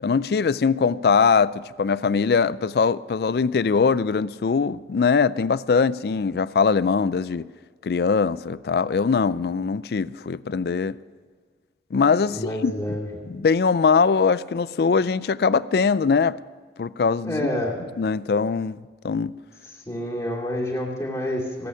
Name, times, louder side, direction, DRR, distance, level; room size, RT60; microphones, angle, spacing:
voice 1, 0.0-7.5 7.8-11.0 11.9-13.0 13.3-16.4 16.8-17.5 18.0-18.8 19.0-19.4, left 5 dB, 60° left, 0.4 m, -22 dB
voice 2, 12.3-13.1 17.2-17.8 19.9-21.7, left 1 dB, 20° left, 2.5 m, -28 dB
17.0 x 8.3 x 6.4 m
head